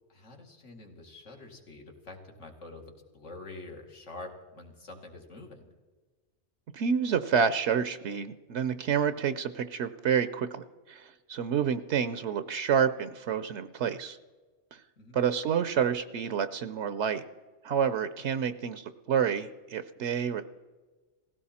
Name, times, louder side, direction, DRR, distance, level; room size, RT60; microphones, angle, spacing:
voice 1, 0.1-5.7 15.0-15.2, left 2 dB, 80° left, 2 dB, 2.3 m, -46 dB
voice 2, 6.7-14.2 14.7-14.8 15.1-17.2 17.6-20.4, right 7 dB, 70° right, 12 dB, 0.9 m, -29 dB
18.5 x 16.0 x 4.2 m, 1.3 s
omnidirectional pair, 1.2 m